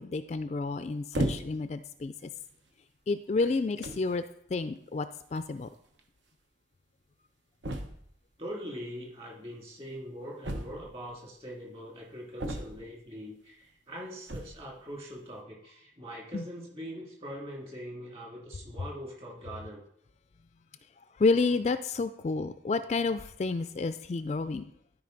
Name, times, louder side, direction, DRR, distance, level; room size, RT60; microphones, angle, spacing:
voice 1, 0.0-2.3 3.1-4.2 4.5-5.7 16.3-16.4 21.2-24.7, left 3 dB, 35° left, 11 dB, 0.3 m, -30 dB
sound 1, 1.1-1.7 2.5-2.7 3.5-3.6 3.8-4.1 5.4-5.5 5.7-5.8 6.0-6.1 7.6-8.2 10.4-11.1 12.4-13.0 14.2-14.7, right 1 dB, 85° right, 1.0 m, -34 dB
voice 2, 8.4-19.8, equal, 35° right, -2 dB, 2.3 m, -42 dB
13.0 x 4.9 x 3.9 m, 0.69 s
head